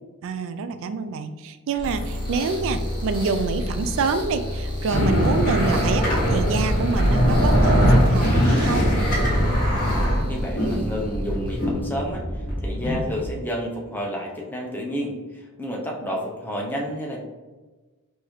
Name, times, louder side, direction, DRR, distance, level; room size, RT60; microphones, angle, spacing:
voice 1, 0.2-8.9, right 4 dB, 60° right, 10 dB, 0.3 m, -26 dB
sound 1, 1.7-11.7, equal, 25° right, 1.0 m, -32 dB
sound 2, 4.9-13.3, equal, 40° left, 1.2 m, -21 dB
voice 2, 9.8-17.2, equal, 10° left, -2 dB, 0.6 m, -31 dB
3.8 x 2.6 x 3.0 m, 1.3 s
head